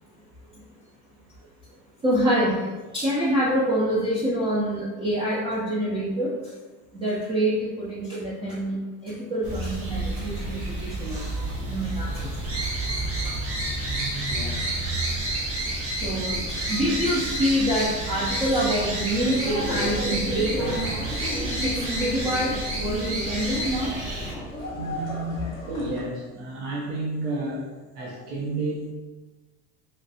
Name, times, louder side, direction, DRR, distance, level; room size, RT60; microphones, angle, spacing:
voice 1, 2.0-2.6 2.9-6.3 6.9-8.8 9.0-12.3 12.6-12.7 16.0-16.4 16.7-20.8 21.6-21.7 22.0-23.9, equal, 15° right, -8 dB, 0.4 m, -26 dB
sound 1, 9.4-24.3, right 1 dB, 40° right, 0.9 m, -29 dB
voice 2, 13.9-14.6 21.9-22.0 24.8-28.9, right 2 dB, 75° right, -4 dB, 0.8 m, -31 dB
sound 2, 19.3-26.0, equal, 15° left, 0.7 m, -33 dB
3.0 x 2.5 x 2.7 m, 1.2 s
cardioid pair, 140°, 34 cm